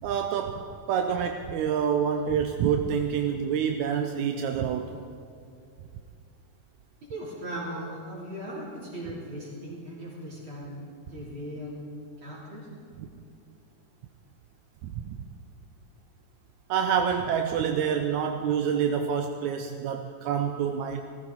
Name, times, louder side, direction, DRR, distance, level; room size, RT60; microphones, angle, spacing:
voice 1, 0.0-5.0 13.0-13.1 14.8-15.2 16.7-21.0, right 7 dB, 80° right, 5 dB, 1.9 m, -27 dB
voice 2, 7.1-10.8 11.1-11.9 12.2-12.7, equal, 40° right, -7 dB, 3.9 m, -38 dB
18.5 x 14.0 x 4.0 m, 2.4 s
omnidirectional pair, 3.5 m